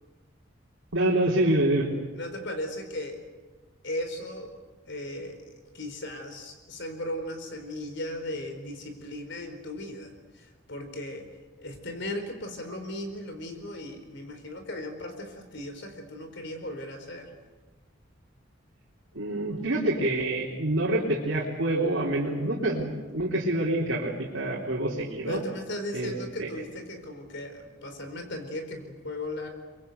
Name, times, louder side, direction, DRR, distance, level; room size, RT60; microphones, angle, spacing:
voice 1, 0.9-1.9 19.1-25.4 25.9-26.5, right 1 dB, 80° right, -4 dB, 3.5 m, -26 dB
voice 2, 2.1-3.2 3.8-4.5 4.9-11.3 11.6-17.3 25.3-29.5, left 1 dB, 65° left, 7 dB, 4.4 m, -37 dB
24.0 x 22.5 x 8.1 m, 1.3 s
head